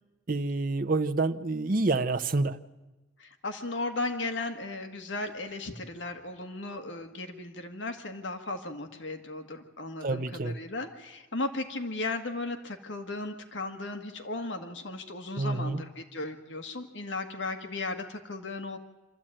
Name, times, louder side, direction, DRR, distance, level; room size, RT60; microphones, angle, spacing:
voice 1, 0.3-2.6 10.0-10.5 15.4-15.8, right 3 dB, 45° right, 7 dB, 0.8 m, -28 dB
voice 2, 3.2-18.8, left 2 dB, 70° left, 6 dB, 1.6 m, -36 dB
26.0 x 13.5 x 8.9 m, 1.2 s
head